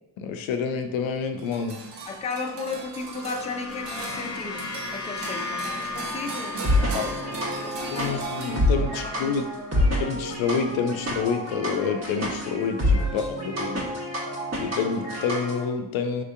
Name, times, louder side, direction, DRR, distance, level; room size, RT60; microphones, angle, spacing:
voice 1, 0.2-1.8 6.9-7.2 7.9-9.4 10.0-13.9 14.6-16.2, left 6 dB, 80° left, 6 dB, 0.5 m, -28 dB
sound 1, 1.4-9.1, right 3 dB, 60° right, 0.8 m, -39 dB
voice 2, 2.1-8.2 8.8-9.4 9.7-9.9 13.0-13.5, left 3 dB, 15° left, 3 dB, 0.4 m, -36 dB
sound 2, 2.8-11.2, left 3 dB, 40° left, 0.8 m, -37 dB
sound 3, 6.6-15.6, left 1 dB, 35° right, 1.1 m, -27 dB
4.3 x 2.7 x 2.4 m, 0.89 s
cardioid pair, 65°, 47 cm